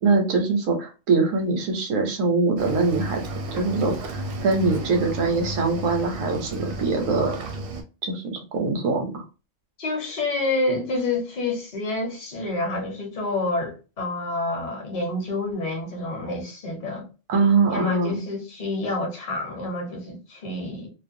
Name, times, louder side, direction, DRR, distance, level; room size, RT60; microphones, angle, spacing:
voice 1, 0.0-7.4 8.0-9.2 17.3-18.2, right 3 dB, 85° right, 1.1 m, -23 dB
Cricket / Waves surf, 2.6-7.8, right 1 dB, 60° right, 0.6 m, -33 dB
voice 2, 9.8-17.0 17.7-20.9, left 2 dB, 40° left, 0.8 m, -28 dB
2.5 x 2.1 x 2.5 m
omnidirectional pair, 1.3 m